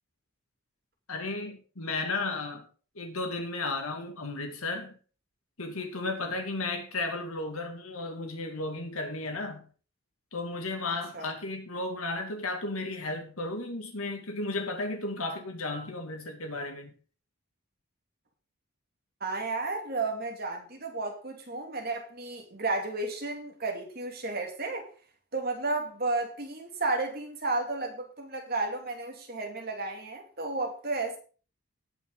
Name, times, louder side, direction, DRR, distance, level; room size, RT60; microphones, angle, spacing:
voice 1, 1.1-2.7 2.9-5.0 5.6-9.7 10.3-17.0, left 2 dB, 85° left, 2.4 m, -34 dB
voice 2, 19.2-24.9 25.3-31.2, right 3 dB, 45° right, 2.5 m, -32 dB
18.0 x 6.0 x 3.9 m
head